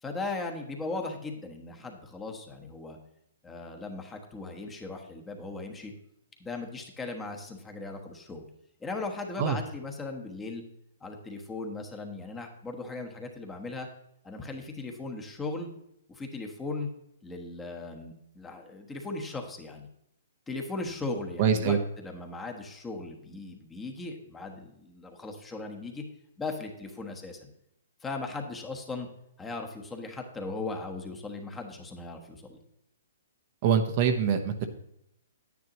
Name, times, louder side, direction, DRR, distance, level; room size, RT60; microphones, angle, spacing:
voice 1, 0.0-3.0 3.4-5.9 6.4-8.4 8.8-10.6 11.0-13.9 14.2-15.7 16.1-16.9 17.2-19.9 20.5-26.0 26.4-27.5 28.0-29.1 29.4-32.6, left 3 dB, 10° left, 3 dB, 1.2 m, -38 dB
voice 2, 21.4-21.8 33.6-34.7, right 7 dB, 45° right, 6 dB, 0.9 m, -24 dB
9.9 x 9.5 x 3.0 m, 0.75 s
hypercardioid pair, 140°, 0 cm